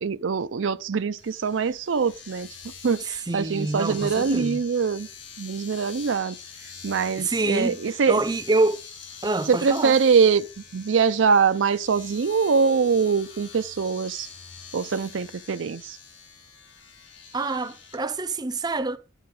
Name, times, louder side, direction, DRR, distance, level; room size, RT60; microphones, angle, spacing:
voice 1, 0.0-2.5 2.8-5.1 5.4-6.4 6.8-8.2 9.5-10.5 10.7-14.3 14.7-16.0, right 5 dB, 80° right, 0.5 m, -23 dB
Domestic sounds home sounds, 1.2-18.0, left 6 dB, 70° left, 2.9 m, -44 dB
voice 2, 3.0-4.6 7.2-8.8 9.2-10.0 17.3-19.0, right 2 dB, 20° right, 0.6 m, -26 dB
10.5 x 8.0 x 3.7 m
head